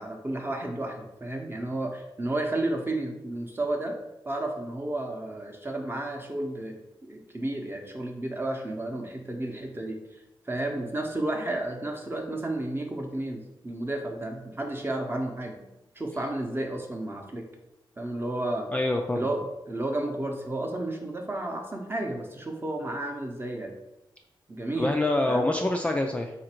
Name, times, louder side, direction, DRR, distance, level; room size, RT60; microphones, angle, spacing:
voice 1, 0.0-3.9 4.3-6.8 7.1-15.7 15.9-17.5 18.0-18.7 19.1-19.4 19.7-23.7 24.5-24.9 25.3-25.5, right 1 dB, 25° right, 2 dB, 0.7 m, -32 dB
voice 2, 18.7-19.3 24.8-26.3, left 2 dB, 15° left, 2 dB, 0.3 m, -26 dB
4.0 x 2.5 x 4.4 m, 0.95 s
wide cardioid pair, 95°, 9 cm